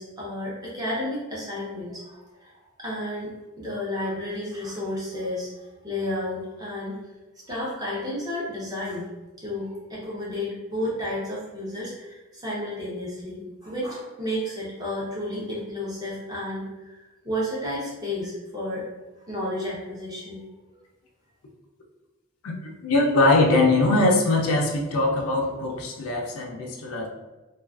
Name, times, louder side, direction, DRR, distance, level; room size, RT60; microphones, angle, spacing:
voice 1, 0.0-2.5 2.8-7.0 7.5-9.0 9.4-18.8 19.3-20.4, left 1 dB, 20° right, -6 dB, 0.7 m, -32 dB
voice 2, 22.8-27.1, left 2 dB, 85° left, 0 dB, 0.4 m, -21 dB
2.3 x 2.3 x 2.3 m, 1.1 s
head